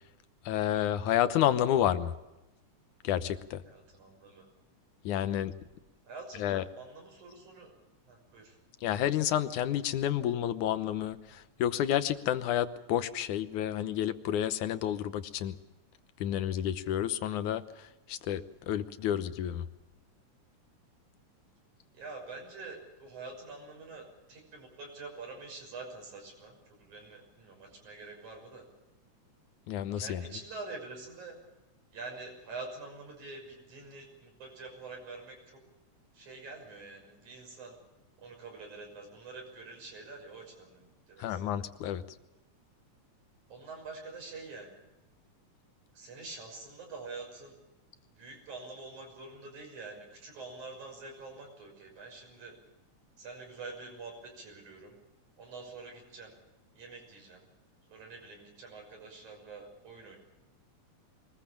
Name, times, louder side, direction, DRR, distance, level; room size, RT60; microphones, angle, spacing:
voice 1, 0.5-2.1 3.0-3.6 5.1-5.5 6.4-6.6 8.8-15.6 16.2-17.6 18.1-19.7 29.7-30.2 41.2-42.0, left 11 dB, 90° left, 11 dB, 2.5 m, -30 dB
voice 2, 3.7-4.5 6.0-7.7 8.1-8.6 21.9-28.6 30.0-31.4 31.9-35.6 36.1-37.8 38.2-41.5 43.5-44.8 45.9-47.6 48.2-52.5 53.2-55.0 55.4-56.3 56.7-57.4 57.9-60.2, right 3 dB, 75° right, 2 dB, 7.7 m, -46 dB
23.5 x 20.5 x 7.3 m, 0.97 s
omnidirectional pair, 3.4 m